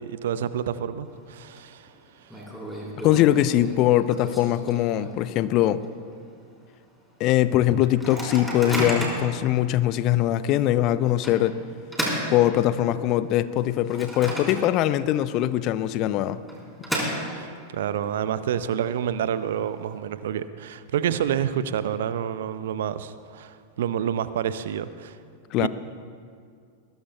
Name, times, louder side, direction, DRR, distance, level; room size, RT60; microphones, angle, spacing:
voice 1, 0.0-1.9 17.3-25.2 25.6-25.7, right 9 dB, 60° right, 14 dB, 0.6 m, -28 dB
Microwave oven, 1.1-1.6 1.9-2.0 2.3-5.4 5.8-5.9 6.2-6.5 7.0-7.1 7.8-9.4 10.0-10.1 11.2-13.1 13.5-15.0 15.3-15.4 16.2-17.7, equal, ahead, 4.1 m, -32 dB
voice 2, 3.0-5.8 7.2-11.6 12.3-16.4 25.5-25.7, left 13 dB, 40° left, 15 dB, 0.6 m, -22 dB
21.0 x 20.5 x 2.3 m, 2.2 s
figure-of-eight pair, 90°, 0 cm